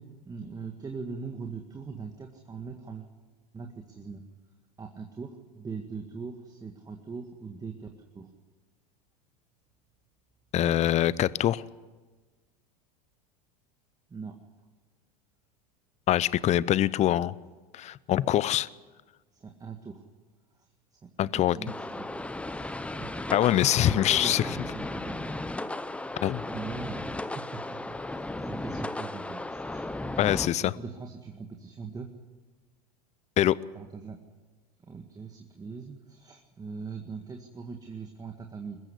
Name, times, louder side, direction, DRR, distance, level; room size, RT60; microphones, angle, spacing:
voice 1, 0.0-3.1 3.5-4.2 4.8-8.3 14.1-14.4 19.3-20.0 21.0-23.3 23.8-25.3 26.5-30.3 30.6-32.1 33.7-34.2 34.8-38.8, right 5 dB, 20° right, 4 dB, 1.9 m, -41 dB
voice 2, 10.5-11.6 16.1-17.3 17.7-18.7 21.2-21.6 23.3-24.4 26.2-26.4 30.2-30.7 33.4-33.6, left 12 dB, 35° left, 20 dB, 0.7 m, -24 dB
sound 1, 21.7-30.5, left 2 dB, 5° left, 0.9 m, -35 dB
21.5 x 15.0 x 9.9 m, 1.3 s
hypercardioid pair, 90°, 20 cm